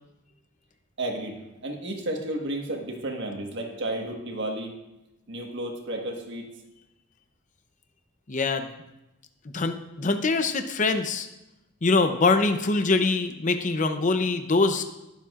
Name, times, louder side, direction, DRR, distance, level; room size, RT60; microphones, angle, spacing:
voice 1, 1.0-4.7 5.3-6.5, right 1 dB, 60° right, 2 dB, 1.4 m, -32 dB
voice 2, 8.3-8.7 9.5-11.3 11.8-14.8, left 3 dB, 35° left, 7 dB, 0.6 m, -23 dB
20.5 x 7.3 x 2.5 m, 0.96 s
head